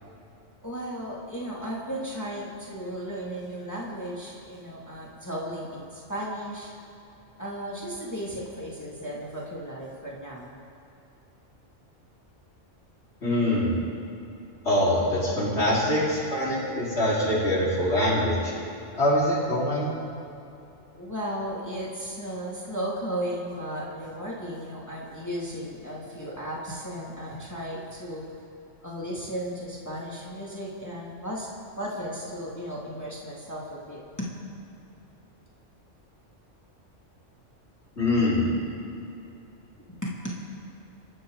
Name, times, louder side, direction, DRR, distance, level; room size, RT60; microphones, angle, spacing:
voice 1, 0.6-6.7 7.4-10.6 20.9-28.3 28.8-31.5 31.8-34.3 39.8-40.4, equal, 15° left, -5 dB, 2.5 m, -35 dB
voice 2, 13.2-13.8 14.6-18.5 19.0-19.9 38.0-38.5, left 1 dB, 60° left, -7 dB, 4.8 m, -24 dB
29.0 x 12.0 x 4.0 m, 2.8 s
omnidirectional pair, 1.3 m